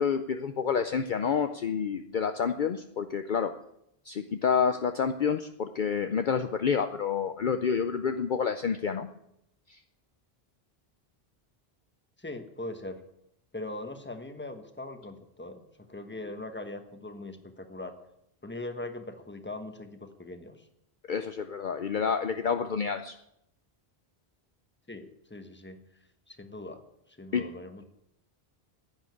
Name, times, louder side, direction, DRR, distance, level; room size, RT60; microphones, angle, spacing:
voice 1, 0.0-3.5 4.1-9.1 21.1-23.1 27.3-27.4, left 6 dB, 55° left, 8 dB, 0.7 m, -28 dB
voice 2, 12.2-13.0 13.5-17.9 18.4-20.7 24.9-25.8 26.3-26.8 27.1-27.8, left 2 dB, 10° left, 7 dB, 1.2 m, -41 dB
10.5 x 8.8 x 9.5 m, 0.80 s
omnidirectional pair, 1.1 m